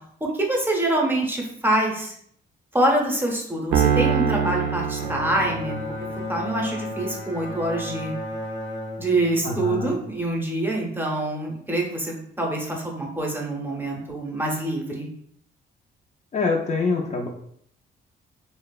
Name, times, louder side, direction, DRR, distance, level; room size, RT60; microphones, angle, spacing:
voice 1, 0.2-2.1 2.7-5.8 6.3-8.1 9.0-15.1, right 1 dB, 10° right, -1 dB, 0.6 m, -25 dB
Piano, 3.7-6.1, right 7 dB, 80° right, 0.5 m, -24 dB
Bowed string instrument, 5.0-10.4, left 2 dB, 80° left, 0.9 m, -34 dB
voice 2, 9.4-9.9 16.3-17.3, left 4 dB, 35° left, 0 dB, 0.4 m, -25 dB
2.8 x 2.0 x 2.3 m, 0.67 s
cardioid pair, 90°, 20 cm